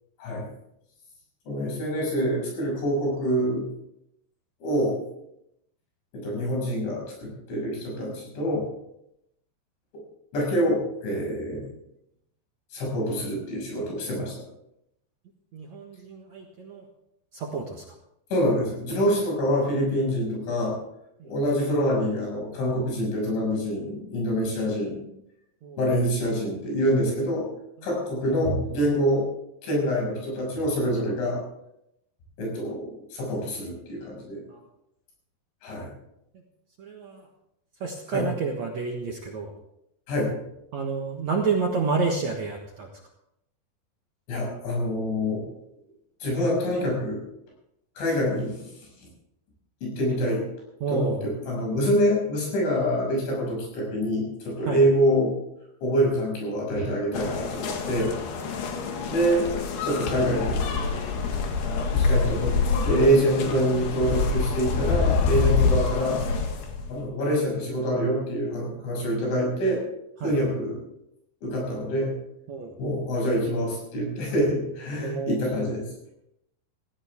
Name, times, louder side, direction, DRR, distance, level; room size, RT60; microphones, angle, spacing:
voice 1, 1.5-3.6 4.6-5.0 6.1-8.7 10.3-11.6 12.7-14.4 18.3-20.8 21.2-25.0 25.8-27.5 27.8-29.3 29.6-31.4 32.4-34.4 35.6-35.9 38.1-38.3 40.1-40.3 44.3-45.4 46.2-47.2 48.0-48.7 49.8-50.4 50.9-55.3 55.8-58.1 59.1-59.5 59.8-60.6 61.2-61.3 61.9-62.5 62.8-66.2 66.9-69.8 70.2-70.8 71.4-72.1 72.8-75.9, equal, 90° left, -1 dB, 8.7 m, -26 dB
voice 2, 15.5-16.8 17.3-17.8 25.6-25.8 34.5-34.6 36.8-37.2 37.8-39.5 40.7-42.9 50.8-51.2 54.7-54.8 70.2-70.3 72.5-72.7 75.0-75.5, right 4 dB, 65° right, 1 dB, 1.9 m, -29 dB
sound 1, 57.1-67.0, left 4 dB, 65° left, 3.7 m, -26 dB
17.0 x 16.5 x 3.6 m, 0.80 s
omnidirectional pair, 5.1 m